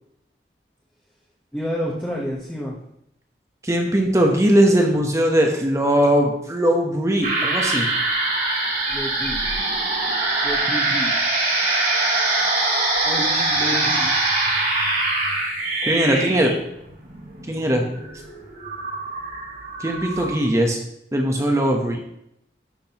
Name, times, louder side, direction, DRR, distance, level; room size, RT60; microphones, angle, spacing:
voice 1, 1.5-2.8 8.9-9.5 10.4-11.2 13.0-14.2 15.8-16.3, equal, 5° left, -5 dB, 1.1 m, -30 dB
voice 2, 3.6-7.9 15.9-16.5 17.5-17.8 19.8-20.8 21.1-22.0, right 1 dB, 15° right, 2 dB, 0.9 m, -19 dB
sound 1, 7.2-20.4, right 2 dB, 55° right, 2.9 m, -23 dB
11.5 x 6.2 x 2.9 m, 0.78 s
head